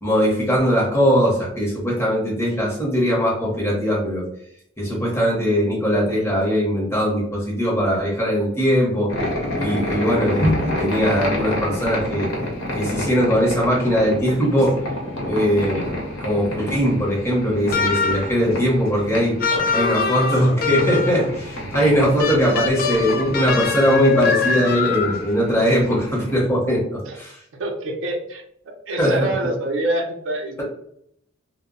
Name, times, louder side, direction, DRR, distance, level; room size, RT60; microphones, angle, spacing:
voice 1, 0.0-4.2 4.8-9.1 9.6-12.3 12.7-14.8 15.3-15.9 16.2-19.4 19.7-27.4 29.0-29.3, equal, 10° left, -3 dB, 0.7 m, -20 dB
sound 1, 9.1-26.4, left 1 dB, 85° left, 0.8 m, -29 dB
sound 2, 17.7-18.4 19.4-21.2 22.2-25.4, left 6 dB, 45° left, 0.3 m, -23 dB
voice 2, 19.5-19.8 20.3-20.5 27.0-27.2 27.5-30.6, right 1 dB, 65° right, 2 dB, 0.5 m, -27 dB
2.0 x 2.0 x 3.6 m, 0.72 s
head